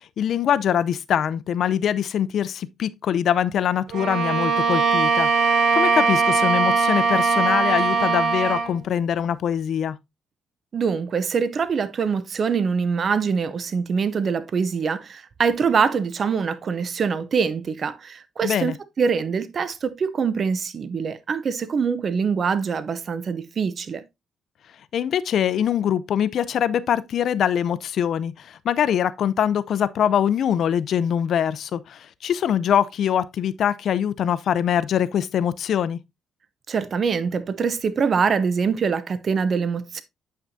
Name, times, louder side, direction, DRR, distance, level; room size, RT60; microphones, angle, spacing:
voice 1, 0.2-10.0 18.4-18.7 24.9-36.0, left 9 dB, 65° left, 0.5 m, -23 dB
Bowed string instrument, 3.9-8.8, right 4 dB, 75° right, 1.4 m, -20 dB
voice 2, 10.7-24.0 36.7-40.0, right 6 dB, 50° right, 0.6 m, -24 dB
8.6 x 5.8 x 2.6 m
cardioid pair, 90°, 0 cm